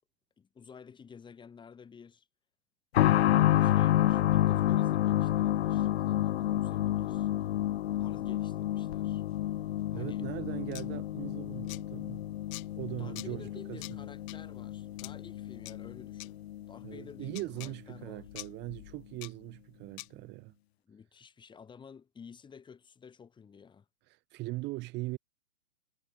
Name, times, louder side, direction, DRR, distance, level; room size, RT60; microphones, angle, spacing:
voice 1, 0.4-2.3 3.3-7.3 8.0-9.2 9.9-10.3 13.0-16.4 16.7-18.3 20.9-23.8, left 6 dB, 10° left, 7.9 m, -52 dB
sound 1, 2.9-17.4 17.6-17.7 18.7-18.8, left 13 dB, 55° left, 1.2 m, -29 dB
voice 2, 9.9-12.2 12.8-13.8 16.8-20.5 24.1-25.2, right 20 dB, 30° right, 3.7 m, -40 dB
sound 2, 10.7-10.8 11.7-11.8 12.5-12.6 13.2-13.3 13.8-13.9 14.3-14.4 15.0-15.1 15.7-15.8 16.2-16.3 17.3-17.7 18.4-18.5 19.2-19.3 20.0-20.1, left 29 dB, 40° left, 4.0 m, -43 dB
hypercardioid pair, 140°, 37 cm